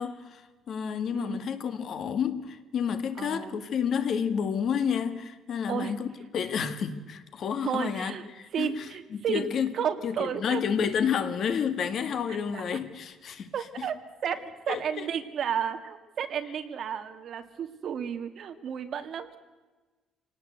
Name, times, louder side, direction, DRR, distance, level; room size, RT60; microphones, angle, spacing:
voice 1, 0.0-6.1 6.3-8.8 9.1-9.7 10.0-13.5 13.8-13.9 14.7-15.1, left 7 dB, 45° left, 1.9 m, -30 dB
voice 2, 1.1-1.5 3.2-3.5 5.7-5.9 7.6-8.2 8.5-9.5 9.7-10.6 12.5-12.6 13.5-14.0 14.2-19.4, right 8 dB, 45° right, 2.1 m, -32 dB
27.0 x 18.5 x 8.1 m
cardioid pair, 165°, 0 cm